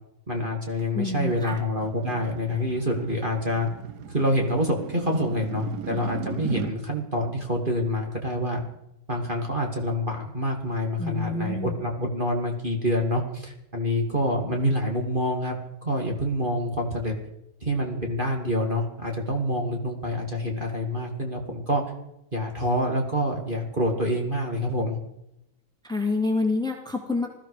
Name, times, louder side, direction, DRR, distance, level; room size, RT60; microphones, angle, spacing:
voice 1, 0.3-3.7 4.1-8.6 9.1-15.6 15.8-17.1 17.6-21.8 22.3-25.0, equal, 25° right, 1 dB, 2.7 m, -27 dB
sound 1, 0.8-6.8, right 8 dB, 60° right, 1.5 m, -38 dB
voice 2, 0.9-1.6 11.0-11.8 25.8-27.3, left 3 dB, ahead, 3 dB, 2.4 m, -27 dB
20.0 x 14.0 x 5.0 m, 0.83 s
omnidirectional pair, 2.2 m